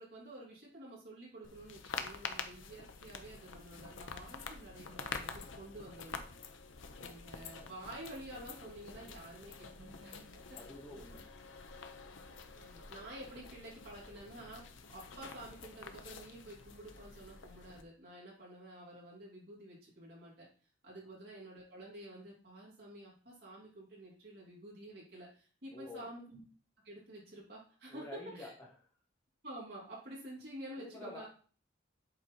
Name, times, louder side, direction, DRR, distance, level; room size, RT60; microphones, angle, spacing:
voice 1, 0.0-6.2 7.0-10.6 12.5-14.6 14.9-20.5 20.8-26.4 26.8-28.5 29.4-31.3, right 1 dB, 55° right, -5 dB, 3.8 m, -50 dB
sound 1, 1.4-17.8, left 5 dB, 85° left, 0.8 m, -47 dB
voice 2, 10.5-11.2 25.7-26.1 27.9-28.5 30.8-31.2, left 2 dB, 15° left, -3 dB, 1.5 m, -48 dB
7.9 x 4.0 x 4.5 m, 0.41 s
head